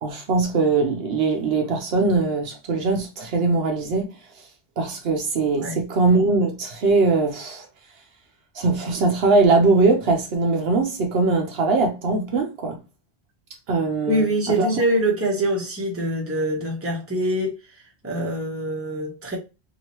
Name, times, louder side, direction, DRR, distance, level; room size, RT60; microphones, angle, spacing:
voice 1, 0.0-4.1 4.8-7.7 8.6-12.8 13.7-14.3 14.6-14.7, right 3 dB, 75° right, 0.9 m, -21 dB
voice 2, 14.1-19.4, right 1 dB, 15° right, 0.8 m, -24 dB
2.9 x 2.6 x 2.9 m
omnidirectional pair, 1.1 m